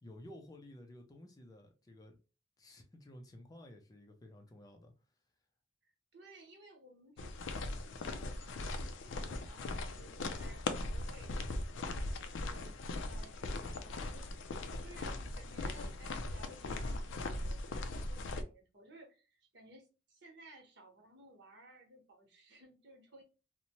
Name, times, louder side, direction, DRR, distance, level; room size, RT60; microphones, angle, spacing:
voice 1, 0.0-2.2 2.6-4.9, left 1 dB, 20° left, 0.4 m, -54 dB
voice 2, 6.1-23.2, right 1 dB, 65° right, 0.9 m, -58 dB
sound 1, 7.2-18.4, left 2 dB, 80° left, 0.4 m, -39 dB
2.7 x 2.1 x 2.9 m
head